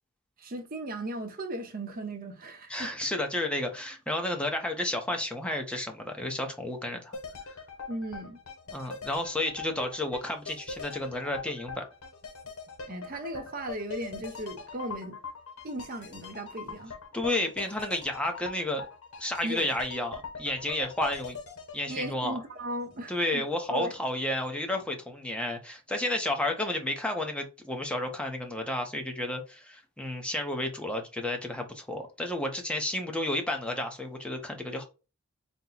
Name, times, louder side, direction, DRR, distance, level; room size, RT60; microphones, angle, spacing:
voice 1, 0.4-2.9 7.9-8.4 12.9-15.2 15.6-16.9 19.4-19.7 21.9-23.9, right 1 dB, 40° right, 0.9 m, -36 dB
voice 2, 2.7-7.2 7.4-7.5 8.7-11.8 17.1-18.9 19.2-21.4 21.7-22.4 23.1-34.8, left 1 dB, 5° left, 0.8 m, -31 dB
sound 1, 7.1-23.1 23.4-23.5, left 5 dB, 85° left, 1.0 m, -43 dB
4.3 x 2.2 x 3.9 m
head